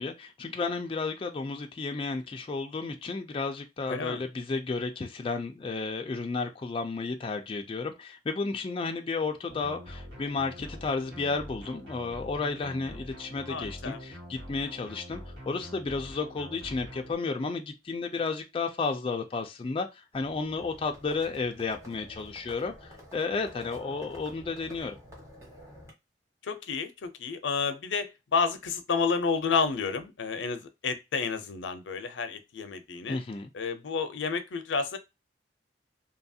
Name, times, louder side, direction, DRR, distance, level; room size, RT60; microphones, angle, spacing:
voice 1, 0.0-25.0 33.1-33.5, left 4 dB, 30° left, 0.3 m, -32 dB
voice 2, 3.9-4.3 13.5-14.0 26.4-33.2 33.5-35.0, left 5 dB, 90° left, 0.5 m, -30 dB
sound 1, 9.5-17.2, equal, 85° right, 1.6 m, -45 dB
Livestock farm animals working animals, 20.1-25.9, left 1 dB, 15° right, 1.2 m, -49 dB
2.8 x 2.3 x 2.6 m
head